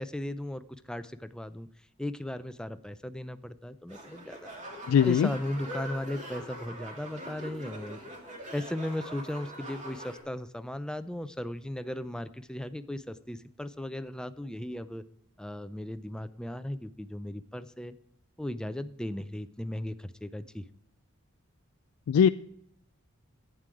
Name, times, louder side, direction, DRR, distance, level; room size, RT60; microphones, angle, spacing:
voice 1, 0.0-1.7 2.0-4.5 5.0-8.0 8.5-15.0 15.4-17.9 18.4-20.6, left 1 dB, 5° left, 11 dB, 0.5 m, -36 dB
sound 1, 3.9-10.2, right 1 dB, 35° right, 2.2 m, -43 dB
voice 2, 4.9-5.3 22.1-22.3, left 8 dB, 85° left, 12 dB, 0.3 m, -20 dB
11.5 x 9.2 x 4.8 m, 0.72 s
head